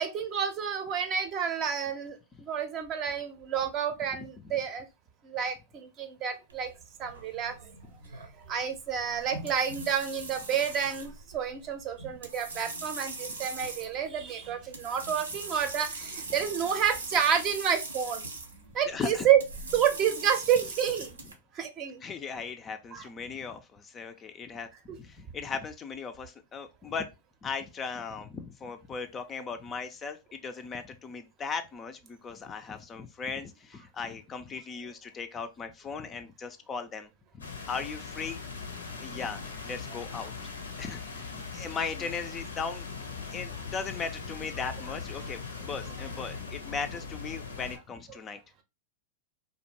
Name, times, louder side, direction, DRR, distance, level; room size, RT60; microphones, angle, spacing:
voice 1, 0.0-4.9 5.2-6.7 7.0-7.7 8.5-18.3 18.7-19.4 19.7-21.1 21.5-22.0 22.9-23.1 24.9-25.0, right 8 dB, 40° right, 0.6 m, -29 dB
sound 1, 6.5-21.3, right 3 dB, 90° right, 0.6 m, -41 dB
voice 2, 18.9-19.3 22.0-27.1 27.4-37.1 37.3-38.4 39.0-40.3 40.8-42.9 43.3-48.4, left 5 dB, 25° left, 0.3 m, -37 dB
sound 2, 37.4-47.8, left 5 dB, 90° left, 0.6 m, -40 dB
2.5 x 2.1 x 2.8 m
hypercardioid pair, 105°, 0 cm